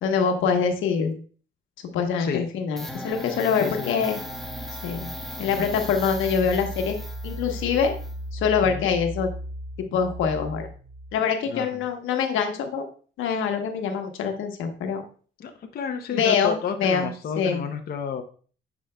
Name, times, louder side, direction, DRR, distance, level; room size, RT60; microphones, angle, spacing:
voice 1, 0.0-1.2 1.8-4.2 4.8-5.1 5.4-7.0 7.2-7.9 8.3-9.3 9.9-10.7 11.1-12.9 13.2-15.0 16.1-17.1 17.4-17.6, left 6 dB, 85° left, 4 dB, 1.1 m, -24 dB
sound 1, 2.8-11.2, equal, ahead, 0.9 m, -35 dB
voice 2, 3.6-3.9 8.6-8.9 11.5-11.7 15.4-18.2, left 6 dB, 50° left, 5 dB, 0.6 m, -31 dB
9.8 x 4.8 x 2.2 m, 0.42 s
cardioid pair, 90°, 20 cm